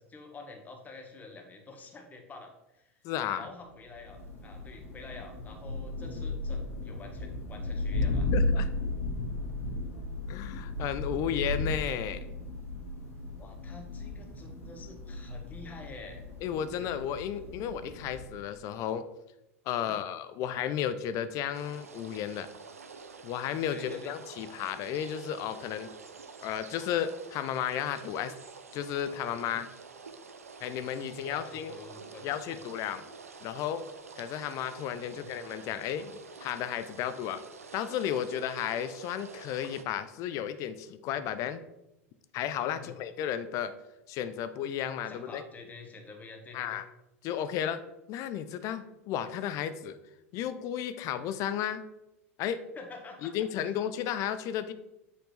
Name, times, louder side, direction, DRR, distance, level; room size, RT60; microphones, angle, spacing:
voice 1, 0.0-3.0 3.4-8.3 11.2-11.3 13.4-16.2 19.8-20.0 23.7-24.1 31.3-32.3 35.1-35.3 42.7-43.0 45.1-46.8 52.7-53.3, left 3 dB, 20° left, 3 dB, 1.4 m, -48 dB
voice 2, 3.0-3.5 8.3-8.7 10.3-12.3 16.4-19.0 19.7-22.5 23.2-25.9 26.4-28.3 28.7-29.7 30.6-31.8 32.2-33.0 33.4-33.9 34.2-37.4 37.7-41.6 42.3-43.7 44.1-45.4 46.5-46.8 47.2-47.8 48.1-49.9 50.3-51.8 52.4-52.6 53.2-54.7, left 9 dB, 45° left, 13 dB, 0.5 m, -33 dB
Thunder, 3.9-18.5, left 2 dB, 90° left, 2.1 m, -35 dB
sound 1, 21.5-39.8, right 5 dB, 85° right, 0.5 m, -48 dB
7.9 x 4.3 x 3.3 m, 0.89 s
figure-of-eight pair, 85°, 8 cm